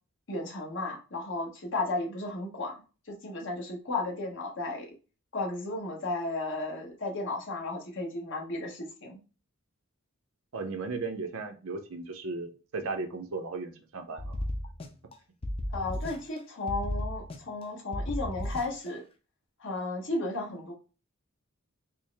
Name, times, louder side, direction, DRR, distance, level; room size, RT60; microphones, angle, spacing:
voice 1, 0.3-2.8 3.1-4.9 5.3-9.2 15.7-19.0 19.6-20.7, left 2 dB, 55° left, -1 dB, 1.1 m, -34 dB
voice 2, 10.5-14.4, right 3 dB, 65° right, 6 dB, 0.6 m, -36 dB
sound 1, 14.2-15.1 15.4-16.4 16.7-17.6 17.9-18.9, left 1 dB, 25° left, 0.4 m, -34 dB
4.4 x 2.0 x 3.3 m, 0.34 s
head